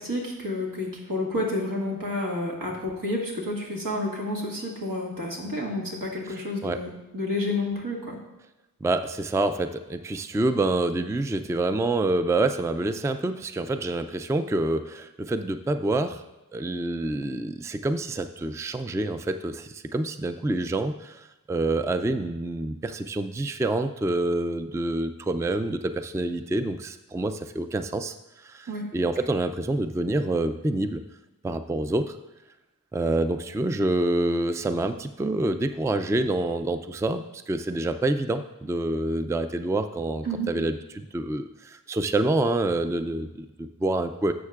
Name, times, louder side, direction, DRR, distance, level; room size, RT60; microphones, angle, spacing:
voice 1, 0.0-8.2 28.7-28.9 40.2-40.5, left 1 dB, 80° right, -3 dB, 1.9 m, -30 dB
voice 2, 6.3-6.8 8.8-16.2 16.5-31.0 31.4-32.2 32.9-44.3, right 2 dB, 10° right, 10 dB, 0.3 m, -27 dB
11.0 x 7.2 x 2.4 m, 1.0 s
wide cardioid pair, 55°, 33 cm